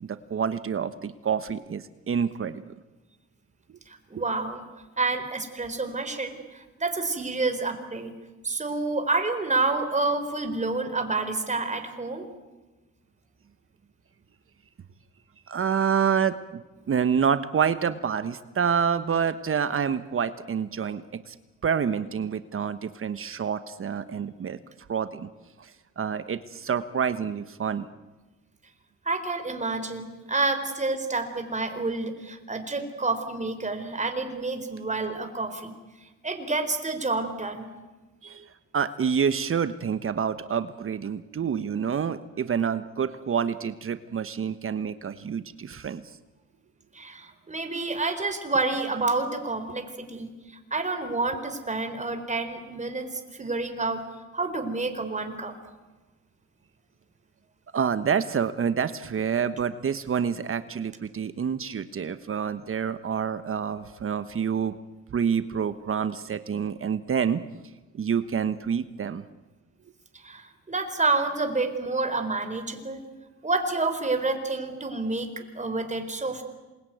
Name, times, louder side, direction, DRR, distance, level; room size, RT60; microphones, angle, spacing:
voice 1, 0.0-2.6 15.5-21.0 21.3-21.4 21.6-24.6 24.9-25.3 25.6-25.7 26.0-27.9 38.2-46.0 57.7-64.8 65.1-67.4 67.9-69.2, right 7 dB, 45° right, 12 dB, 1.3 m, -27 dB
voice 2, 3.9-4.6 5.0-8.1 8.4-12.3 29.1-35.7 36.2-37.7 46.9-54.0 54.3-55.5 70.1-73.0 73.4-76.4, right 3 dB, 25° right, 7 dB, 4.3 m, -29 dB
27.5 x 21.5 x 9.4 m, 1.2 s
cardioid pair, 90°, 30 cm